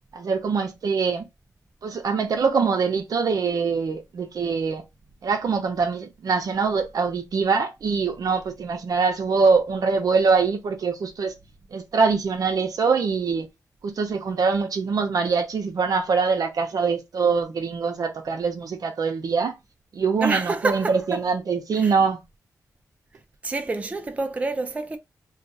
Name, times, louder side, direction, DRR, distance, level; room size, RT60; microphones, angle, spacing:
voice 1, 0.1-1.3 1.8-4.8 5.2-11.3 11.7-13.5 13.8-19.6 19.9-22.2, right 5 dB, 70° right, 0.7 m, -23 dB
voice 2, 20.2-21.2 21.7-22.0 23.4-25.0, right 3 dB, 20° right, 0.3 m, -28 dB
2.3 x 2.3 x 4.0 m
wide cardioid pair, 110°, 6 cm